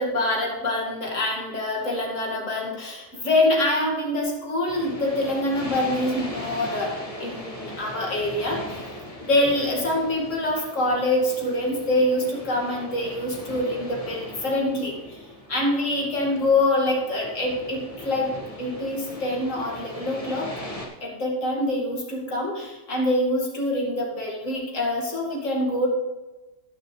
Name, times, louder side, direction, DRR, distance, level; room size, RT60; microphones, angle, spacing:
voice 1, 0.0-6.9 7.2-8.6 9.2-15.2 15.5-18.3 18.6-20.5 21.0-25.9, left 1 dB, 70° left, -2 dB, 2.6 m, -25 dB
sound 1, 4.7-20.9, left 1 dB, 25° left, 1.8 m, -39 dB
19.0 x 6.5 x 3.3 m, 1.1 s
omnidirectional pair, 1.4 m